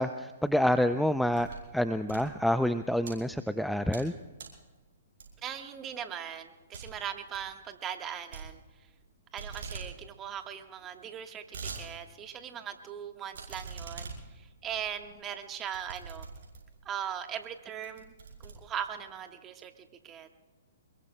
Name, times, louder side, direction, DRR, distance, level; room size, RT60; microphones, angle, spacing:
voice 1, 0.0-1.5 1.7-4.1, left 1 dB, ahead, 11 dB, 0.4 m, -27 dB
sound 1, 0.8-1.7 2.0-3.1 3.6-4.1 4.4-4.6 5.2-5.6 5.9-6.0 6.3-6.4 6.7-6.9 7.2-7.5 8.3-9.1 9.4-9.9 10.2-10.3 10.5-10.6 11.1-11.8 12.3-12.4 13.3-16.8 17.4-17.5 17.8-19.1, right 5 dB, 65° right, 6.5 m, -43 dB
voice 2, 5.4-8.6 9.3-16.3 16.8-18.1 18.4-20.3, right 9 dB, 25° right, 6 dB, 1.3 m, -39 dB
26.5 x 22.0 x 2.2 m, 1.2 s
hypercardioid pair, 130°, 0 cm